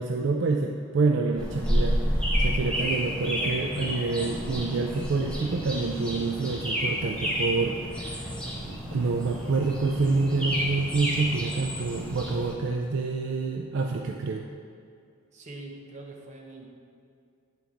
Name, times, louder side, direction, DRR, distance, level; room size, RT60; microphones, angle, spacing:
voice 1, 0.0-2.0 2.4-8.3 8.6-14.4, right 3 dB, 60° right, 1 dB, 0.4 m, -27 dB
sound 1, 1.4-12.5, equal, 5° left, 0.8 m, -30 dB
voice 2, 15.3-16.7, right 2 dB, 35° right, -1 dB, 0.8 m, -43 dB
8.2 x 4.6 x 3.8 m, 2.3 s
head